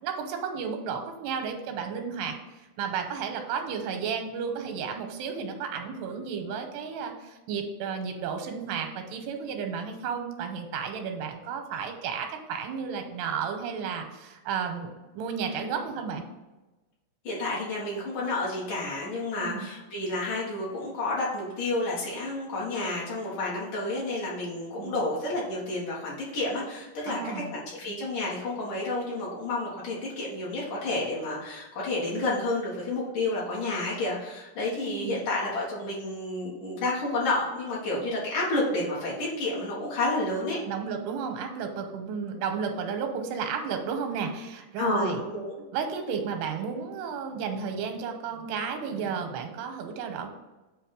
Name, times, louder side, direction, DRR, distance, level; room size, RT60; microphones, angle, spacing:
voice 1, 0.0-2.4 2.8-16.2 19.4-19.7 24.8-25.0 27.1-27.5 34.9-35.2 40.6-45.2 45.7-50.3, right 6 dB, 90° right, 5 dB, 2.8 m, -33 dB
voice 2, 17.2-40.6 44.8-45.5, left 2 dB, 60° left, -6 dB, 2.7 m, -30 dB
8.0 x 2.8 x 5.1 m, 1.1 s
omnidirectional pair, 4.7 m